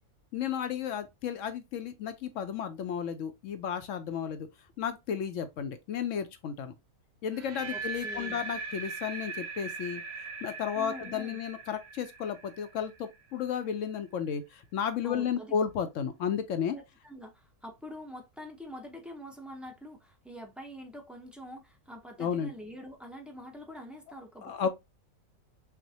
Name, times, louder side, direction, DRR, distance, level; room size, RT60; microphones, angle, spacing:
voice 1, 0.3-4.5 4.8-6.7 7.2-10.0 10.4-16.8 22.2-22.5 24.4-24.7, left 8 dB, 70° left, 0.8 m, -33 dB
sound 1, 7.3-13.3, right 4 dB, 55° right, 0.8 m, -40 dB
voice 2, 7.7-8.4 10.7-11.4 15.0-15.6 16.7-24.7, equal, ahead, 0.4 m, -45 dB
6.0 x 2.1 x 2.7 m
omnidirectional pair, 1.6 m